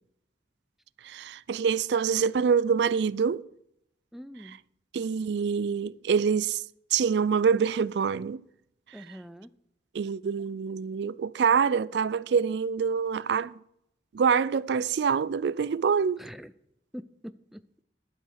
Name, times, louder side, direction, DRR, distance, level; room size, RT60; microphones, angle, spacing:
voice 1, 1.0-3.5 4.9-6.6 6.9-8.4 9.9-13.5 14.1-16.3, right 6 dB, 70° right, 0.4 m, -25 dB
voice 2, 4.1-4.6 8.9-9.5 16.2-16.5 16.9-17.8, equal, ahead, 0.4 m, -44 dB
12.0 x 7.9 x 6.4 m
head